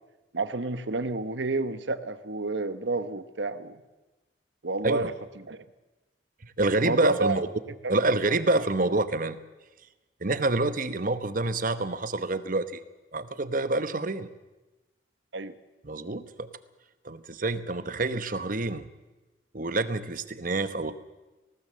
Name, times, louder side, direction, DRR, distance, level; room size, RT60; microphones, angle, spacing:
voice 1, 0.3-3.8 4.6-5.6 6.8-7.4 7.8-8.0 15.3-15.5, right 3 dB, 70° right, 13 dB, 1.1 m, -30 dB
voice 2, 6.4-7.5 7.9-9.4 10.2-12.8 13.1-14.3 15.8-16.5 17.0-18.9 19.5-20.9, right 2 dB, 45° right, 12 dB, 1.0 m, -27 dB
19.5 x 17.5 x 7.5 m, 1.1 s
head